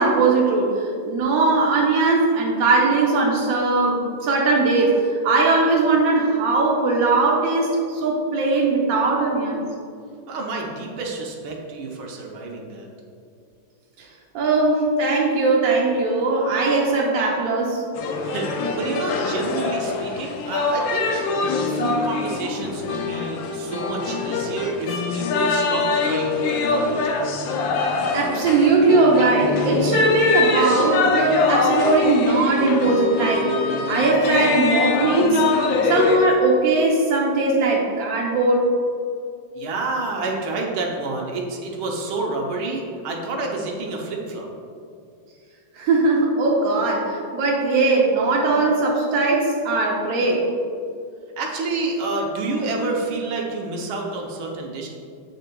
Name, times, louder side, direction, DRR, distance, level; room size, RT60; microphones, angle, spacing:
voice 1, 0.0-9.6 14.3-17.8 28.1-33.6 33.9-35.4 35.9-38.7 45.7-50.5, right 3 dB, 65° right, -2 dB, 0.9 m, -19 dB
voice 2, 10.3-12.9 18.2-21.2 21.7-27.4 39.5-44.5 51.4-54.9, right 3 dB, 80° right, 0 dB, 1.7 m, -29 dB
sound 1, 18.0-36.2, left 4 dB, 75° left, 1.3 m, -23 dB
7.5 x 6.6 x 2.3 m, 2.4 s
omnidirectional pair, 2.2 m